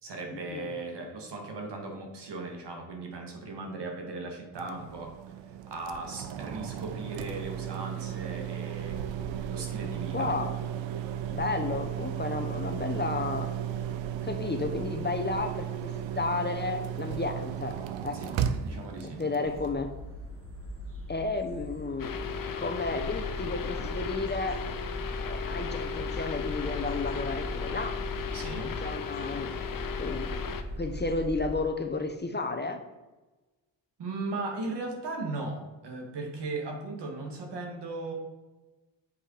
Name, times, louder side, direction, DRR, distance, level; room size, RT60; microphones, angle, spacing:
voice 1, 0.0-5.1 5.7-9.0 9.5-10.3 18.1-19.2 28.3-28.7 34.0-38.1, right 3 dB, 65° right, 2 dB, 2.3 m, -37 dB
sound 1, 4.5-19.7, right 9 dB, 80° right, 0.8 m, -35 dB
voice 2, 10.1-10.5 11.3-13.5 14.2-17.7 18.0-18.2 19.0-19.9 21.1-24.6 25.3-27.9 28.6-29.5 30.0-30.4 30.8-32.8, left 3 dB, 25° left, 5 dB, 1.0 m, -32 dB
sound 2, 19.4-31.6, left 1 dB, 30° right, 2.8 m, -39 dB
sound 3, 22.0-30.6, left 7 dB, 45° left, 0.9 m, -36 dB
8.0 x 5.4 x 5.0 m, 1.1 s
cardioid pair, 70°, 45 cm